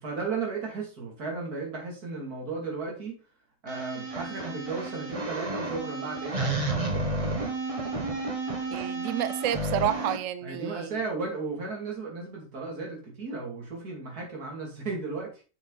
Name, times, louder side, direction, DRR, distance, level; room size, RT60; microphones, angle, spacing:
voice 1, 0.0-3.2 3.6-7.0 10.4-15.4, right 4 dB, 90° right, 3.1 m, -35 dB
sound 1, 3.7-10.2, right 2 dB, 25° right, 1.1 m, -31 dB
voice 2, 8.7-11.0, right 11 dB, 70° right, 0.8 m, -30 dB
6.7 x 6.4 x 4.0 m
omnidirectional pair, 1.6 m